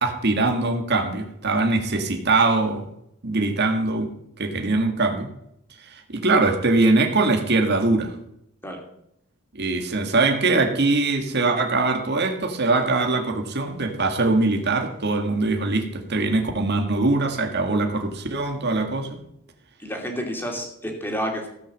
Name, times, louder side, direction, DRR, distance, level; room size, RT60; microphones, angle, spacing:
voice 1, 0.0-2.9 3.2-4.1 4.4-5.3 5.9-8.1 9.5-19.1, right 3 dB, 50° right, 3 dB, 1.9 m, -22 dB
voice 2, 19.8-21.5, equal, 10° left, 2 dB, 2.8 m, -29 dB
17.0 x 6.2 x 7.6 m, 0.77 s
head